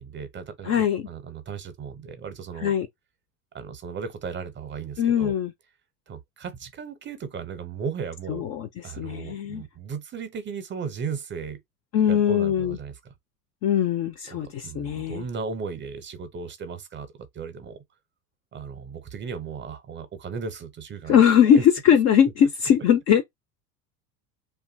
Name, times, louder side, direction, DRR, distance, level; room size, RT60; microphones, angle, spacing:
voice 1, 0.0-2.7 3.5-5.3 6.1-8.4 8.8-11.6 12.1-12.9 14.3-17.8 18.5-21.2 21.5-21.6, right 6 dB, 25° right, 0.6 m, -36 dB
voice 2, 0.6-1.1 2.6-2.9 5.0-5.5 8.3-9.6 11.9-12.8 13.6-15.2 21.1-23.2, left 9 dB, 35° left, 0.4 m, -21 dB
2.6 x 2.2 x 2.6 m
hypercardioid pair, 80°, 48 cm